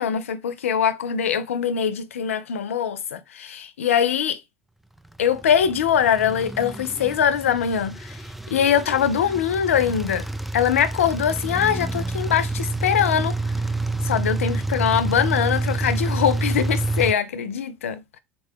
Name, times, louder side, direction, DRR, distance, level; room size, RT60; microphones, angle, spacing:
voice 1, 0.0-4.4 5.2-8.2 8.5-10.3 10.5-13.3 14.0-18.2, left 8 dB, 90° left, 0.4 m, -22 dB
sound 1, 5.2-17.1, right 2 dB, ahead, 0.3 m, -28 dB
4.0 x 2.2 x 3.5 m
hypercardioid pair, 80°, 7 cm